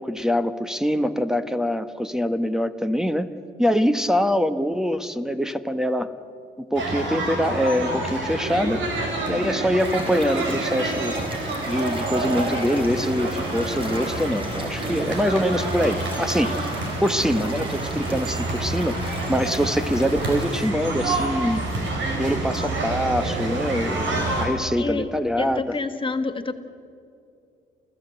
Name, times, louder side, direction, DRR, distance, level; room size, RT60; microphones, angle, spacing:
voice 1, 0.0-3.3 3.6-6.1 6.6-8.8 9.3-11.2 11.7-16.7 17.0-21.6 22.2-25.8, equal, 5° right, 11 dB, 1.2 m, -24 dB
sound 1, 6.7-24.5, right 2 dB, 70° right, 5.5 m, -28 dB
sound 2, 9.8-20.7, right 1 dB, 25° right, 4.2 m, -36 dB
voice 2, 24.8-25.1 25.4-26.5, left 3 dB, 25° left, 7 dB, 1.7 m, -29 dB
29.0 x 15.0 x 8.0 m, 2.5 s
cardioid pair, 90°, 20 cm